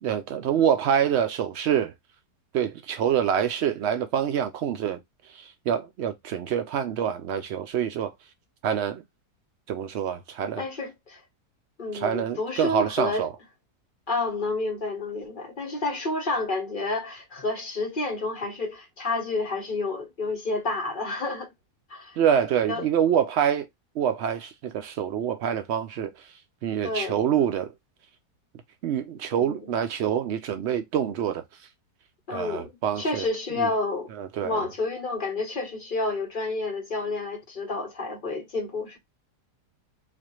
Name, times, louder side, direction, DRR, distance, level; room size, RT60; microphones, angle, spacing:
voice 1, 0.0-1.9 2.5-5.0 5.3-8.1 8.6-9.0 9.7-10.6 11.9-13.3 22.2-23.7 24.0-26.1 26.6-27.7 28.8-31.4 32.3-33.3 33.6-33.7 34.1-34.6, right 9 dB, 85° right, 0.6 m, -26 dB
voice 2, 10.6-11.2 11.8-13.3 14.1-21.5 21.9-22.2 22.7-22.9 26.8-27.2 29.3-29.7 32.3-34.1 34.4-39.0, left 3 dB, 35° left, 1.0 m, -30 dB
4.2 x 2.5 x 2.9 m
omnidirectional pair, 1.7 m